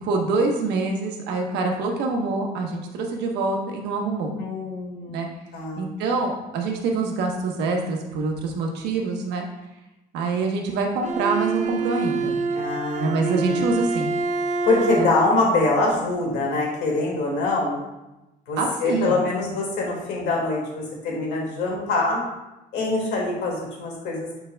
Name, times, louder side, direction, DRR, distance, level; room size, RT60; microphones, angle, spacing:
voice 1, 0.0-4.3 5.1-5.3 5.8-9.5 10.1-12.4 13.0-14.1 15.0-15.1 18.6-19.2, right 3 dB, 80° right, 1 dB, 1.2 m, -25 dB
voice 2, 4.3-5.9 12.5-13.6 14.7-17.8 18.5-22.2 22.7-24.3, left 2 dB, 90° left, -2 dB, 2.2 m, -24 dB
Bowed string instrument, 11.0-15.4, right 4 dB, 45° right, 0.5 m, -26 dB
9.4 x 4.5 x 2.3 m, 0.98 s
cardioid pair, 110°, 17 cm